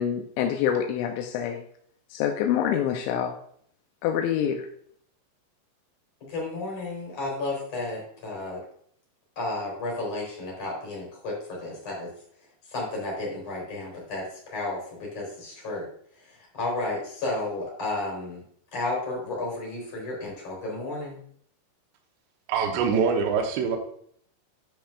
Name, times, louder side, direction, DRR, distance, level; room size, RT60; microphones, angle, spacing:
voice 1, 0.0-1.6 2.1-3.4 4.0-4.7, left 9 dB, 85° left, 4 dB, 2.9 m, -26 dB
voice 2, 6.3-8.6 9.4-12.1 12.7-15.9 16.2-18.4 18.7-21.2, left 2 dB, 35° left, -3 dB, 4.6 m, -32 dB
voice 3, 22.5-23.8, right 6 dB, 80° right, 1 dB, 3.1 m, -24 dB
10.0 x 7.6 x 2.4 m, 0.63 s
omnidirectional pair, 5.2 m